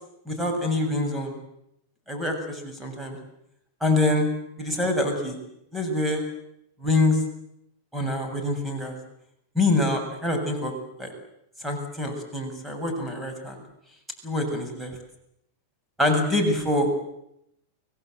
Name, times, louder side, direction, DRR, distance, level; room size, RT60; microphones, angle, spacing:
voice 1, 0.3-1.4 2.1-3.2 3.8-4.3 4.6-5.4 5.7-6.2 6.8-7.2 7.9-9.0 9.6-10.7 11.0-11.1 11.6-13.6 14.2-14.9 16.0-16.9, left 2 dB, 5° right, 4 dB, 7.2 m, -25 dB
24.5 x 22.5 x 8.0 m, 0.77 s
hypercardioid pair, 115°, 0 cm